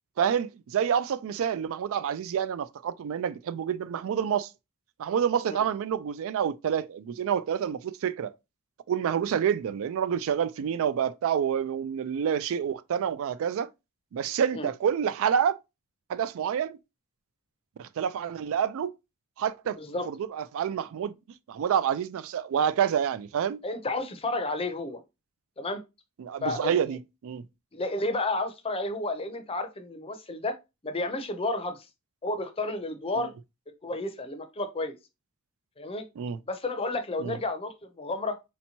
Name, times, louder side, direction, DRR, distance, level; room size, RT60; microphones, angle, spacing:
voice 1, 0.2-4.5 5.0-8.3 8.9-13.7 14.1-15.6 16.1-16.8 17.8-19.0 19.4-19.8 20.1-21.1 21.5-23.6 26.2-27.4 33.2-33.3 36.2-36.4 37.2-37.4, right 8 dB, 65° right, 0.3 m, -28 dB
voice 2, 23.6-25.0 25.6-25.8 26.4-26.8 27.7-30.5 30.8-31.9 32.2-33.3 33.8-35.0 35.8-36.1 36.5-38.4, left 2 dB, 25° left, 0.6 m, -31 dB
4.3 x 2.8 x 2.8 m
head